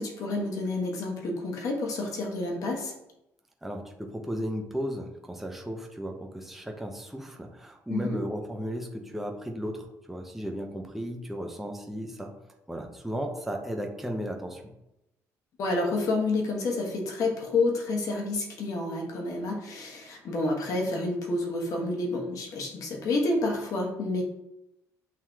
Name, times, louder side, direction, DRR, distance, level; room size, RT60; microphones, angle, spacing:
voice 1, 0.0-2.9 7.9-8.2 15.6-24.2, left 2 dB, 60° left, 0 dB, 1.2 m, -29 dB
voice 2, 3.6-12.3 12.7-14.6, equal, 5° right, 2 dB, 0.6 m, -35 dB
7.5 x 2.9 x 2.4 m, 0.88 s
cardioid pair, 95°, 7 cm